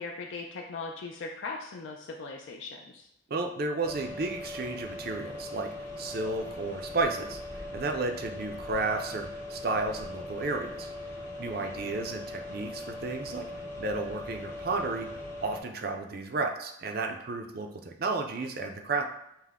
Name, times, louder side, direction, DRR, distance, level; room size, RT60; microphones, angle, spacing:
voice 1, 0.0-3.1 11.6-11.8, left 4 dB, 70° left, 0 dB, 0.4 m, -39 dB
voice 2, 3.3-5.7 6.0-10.9 11.4-13.5 13.8-15.1 15.4-19.0, right 3 dB, 50° right, 4 dB, 0.4 m, -32 dB
sound 1, 3.8-15.6, left 2 dB, 10° left, 0.5 m, -40 dB
5.7 x 2.1 x 3.5 m, 0.79 s
head